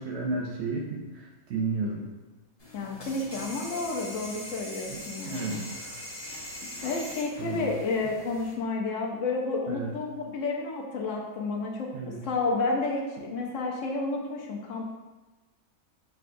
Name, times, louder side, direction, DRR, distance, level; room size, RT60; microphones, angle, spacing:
voice 1, 0.0-2.0 4.9-5.7 7.4-7.7 9.7-9.9 11.9-12.2, right 3 dB, 65° right, -2 dB, 0.7 m, -33 dB
sound 1, 2.6-8.5, left 1 dB, 30° left, 0.9 m, -41 dB
voice 2, 2.7-5.6 6.6-11.9 12.2-14.9, left 3 dB, 70° left, -1 dB, 0.9 m, -31 dB
6.3 x 2.3 x 2.5 m, 1.1 s
omnidirectional pair, 1.5 m